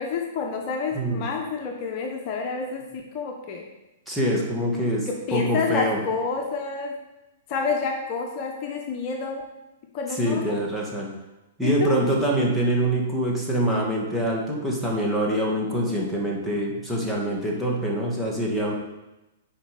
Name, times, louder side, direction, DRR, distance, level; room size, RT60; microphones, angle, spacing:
voice 1, 0.0-3.6 5.1-6.9 7.5-9.4 9.9-10.6 11.6-11.9, left 5 dB, 40° left, 1 dB, 1.3 m, -29 dB
voice 2, 0.9-1.3 4.1-6.0 10.1-11.1 11.6-18.7, right 1 dB, ahead, -4 dB, 2.2 m, -25 dB
8.7 x 5.2 x 5.3 m, 0.98 s
hypercardioid pair, 115°, 0 cm